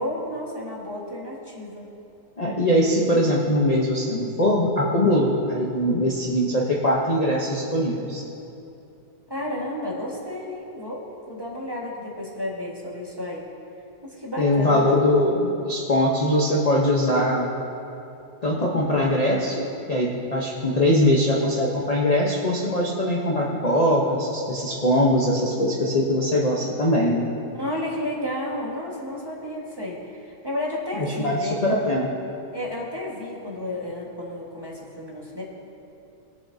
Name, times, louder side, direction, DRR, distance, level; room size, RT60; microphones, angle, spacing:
voice 1, 0.0-1.9 9.3-13.4 14.0-15.0 27.6-31.7 32.5-35.4, left 1 dB, 15° right, -4 dB, 1.4 m, -32 dB
voice 2, 2.4-8.2 14.4-17.5 18.4-27.3 31.0-32.2, left 1 dB, 30° left, -4 dB, 0.8 m, -22 dB
21.5 x 7.2 x 2.8 m, 2.8 s
omnidirectional pair, 1.8 m